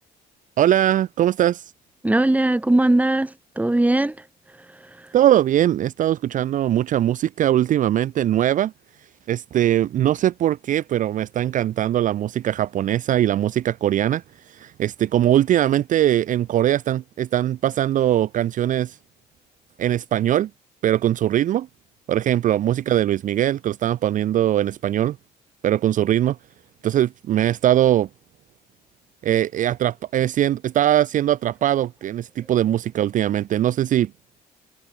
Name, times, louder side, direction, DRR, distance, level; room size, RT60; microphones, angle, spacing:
voice 1, 0.6-1.7 5.1-8.7 9.3-19.0 19.8-20.5 20.8-21.7 22.1-25.2 25.6-26.4 26.8-28.1 29.2-34.1, right 12 dB, 50° right, 0.5 m, -21 dB
voice 2, 2.0-5.1, right 1 dB, 10° right, 3.7 m, -21 dB
cardioid pair, 110°, 16 cm